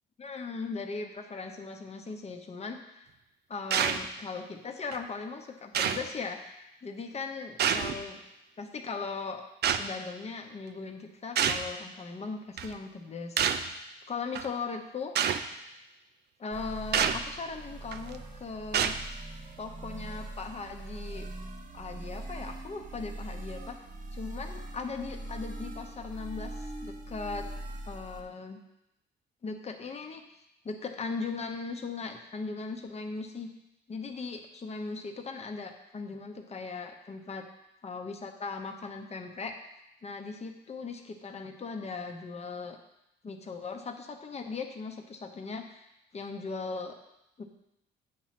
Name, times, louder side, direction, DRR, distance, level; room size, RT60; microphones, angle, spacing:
voice 1, 0.2-3.1 3.5-8.2 8.6-9.4 9.8-13.6 14.1-15.1 16.4-19.0 19.6-21.3 21.7-23.8 24.1-27.5 27.9-28.6 29.4-30.2 30.6-33.5 33.9-37.4 37.8-39.6 40.0-42.8 43.2-45.9 46.1-46.9 47.4-47.5, left 4 dB, 35° left, 4 dB, 0.8 m, -38 dB
sound 1, 3.7-4.1 4.9-5.0 5.7-6.1 7.6-8.0 9.6-9.9 11.4-11.7 12.6-12.7 13.4-13.7 14.4-14.5 15.2-15.4 16.9-17.2 17.9-18.2 18.7-19.0, right 8 dB, 55° right, 0.5 m, -27 dB
sound 2, 16.5-28.2, right 1 dB, 40° right, 1.1 m, -42 dB
8.3 x 3.1 x 5.8 m, 0.88 s
cardioid pair, 90°, 20 cm